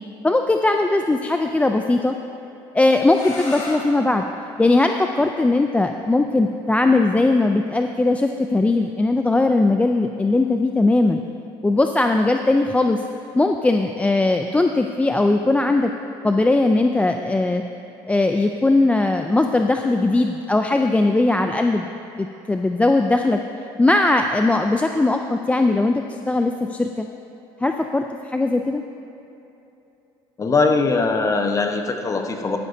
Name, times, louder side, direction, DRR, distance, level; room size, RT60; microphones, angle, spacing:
voice 1, 0.2-2.1 2.7-4.2 4.6-11.2 11.6-13.0 13.4-15.9 16.2-17.6 18.1-21.9 22.2-23.4 23.8-27.1 27.6-28.8, left 2 dB, 10° left, 5 dB, 0.4 m, -19 dB
sound 1, 3.1-8.8, left 1 dB, 70° left, 2.6 m, -40 dB
voice 2, 30.4-32.6, left 3 dB, 30° left, 4 dB, 1.0 m, -21 dB
12.5 x 11.5 x 2.7 m, 2.9 s
supercardioid pair, 90°, 11 cm